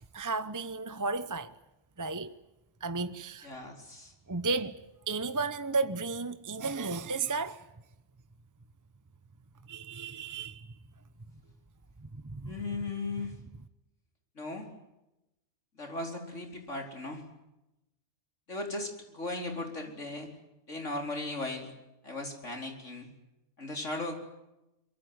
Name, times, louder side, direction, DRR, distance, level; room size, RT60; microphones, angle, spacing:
voice 1, 0.1-1.5 2.0-2.3 2.8-3.5 4.3-4.8 5.1-7.6 9.7-10.8 12.0-12.5, right 3 dB, 20° right, 0.8 m, -33 dB
voice 2, 3.4-4.1 12.4-13.3 14.4-14.7 15.7-17.2 18.5-20.3 20.7-21.7 22.0-23.1 23.6-24.1, left 2 dB, 90° left, 4.9 m, -37 dB
24.5 x 23.0 x 9.5 m
omnidirectional pair, 1.2 m